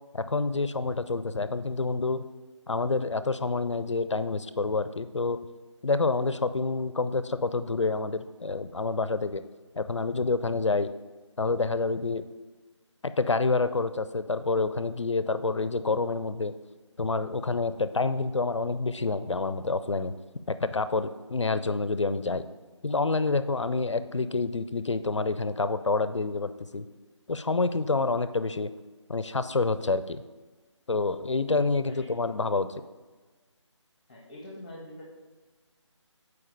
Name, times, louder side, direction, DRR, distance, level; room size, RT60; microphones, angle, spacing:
voice 1, 0.1-2.2 2.7-5.4 5.8-9.4 9.8-10.9 11.4-12.2 13.0-16.5 17.0-20.1 20.5-22.4 22.8-26.9 27.3-28.7 29.1-30.2 30.9-32.8, left 3 dB, 70° left, 12 dB, 0.5 m, -28 dB
voice 2, 34.1-35.1, left 1 dB, 15° left, -2 dB, 1.0 m, -44 dB
7.4 x 4.8 x 4.7 m, 1.3 s
figure-of-eight pair, 160°, 16 cm